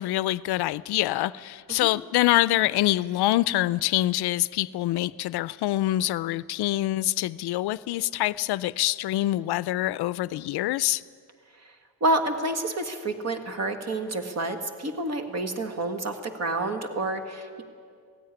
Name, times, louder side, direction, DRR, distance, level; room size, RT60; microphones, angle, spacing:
voice 1, 0.0-11.0, left 16 dB, 70° left, 0.5 m, -25 dB
voice 2, 12.0-17.6, right 2 dB, 40° right, 1.9 m, -29 dB
16.5 x 16.0 x 9.9 m
cardioid pair, 150°, 40 cm